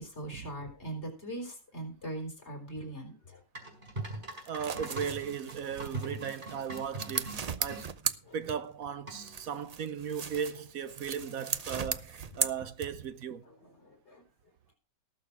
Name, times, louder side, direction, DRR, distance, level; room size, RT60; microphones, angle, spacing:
voice 1, 0.0-3.4 8.2-8.4 13.5-14.2, right 1 dB, 45° left, 4.4 m, -41 dB
sound 1, 3.6-7.9 9.1-9.5, right 2 dB, 35° right, 4.8 m, -42 dB
sound 2, 4.3-8.9 9.2-13.2, right 6 dB, 50° right, 0.4 m, -37 dB
voice 2, 4.5-7.9 8.3-12.1 12.3-13.5, right 7 dB, 70° right, 1.2 m, -37 dB
18.5 x 6.7 x 4.7 m
omnidirectional pair, 1.6 m